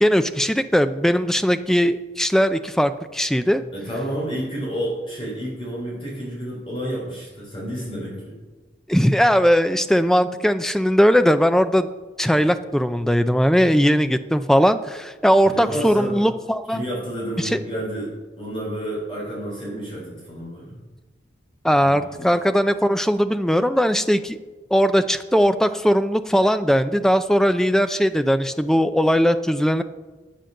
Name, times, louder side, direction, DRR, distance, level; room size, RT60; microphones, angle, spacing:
voice 1, 0.0-3.6 8.9-11.9 12.2-16.8 17.4-17.6 21.6-24.4 24.7-29.8, equal, 5° left, 10 dB, 0.4 m, -19 dB
voice 2, 3.7-8.3 15.4-16.2 16.7-20.8 21.8-22.3, equal, 30° left, -4 dB, 3.7 m, -30 dB
10.0 x 8.9 x 6.5 m, 1.2 s
head